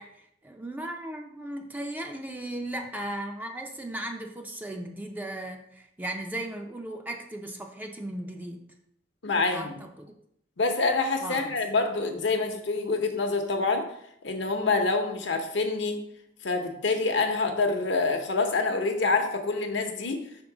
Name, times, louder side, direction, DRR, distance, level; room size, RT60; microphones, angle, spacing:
voice 1, 0.0-8.6 9.5-10.1 11.2-11.6, right 1 dB, 10° right, 3 dB, 0.4 m, -37 dB
voice 2, 9.2-9.7 10.6-13.8 14.2-16.0 16.4-20.2, left 3 dB, 70° left, 5 dB, 0.8 m, -26 dB
5.3 x 3.7 x 4.8 m, 0.75 s
head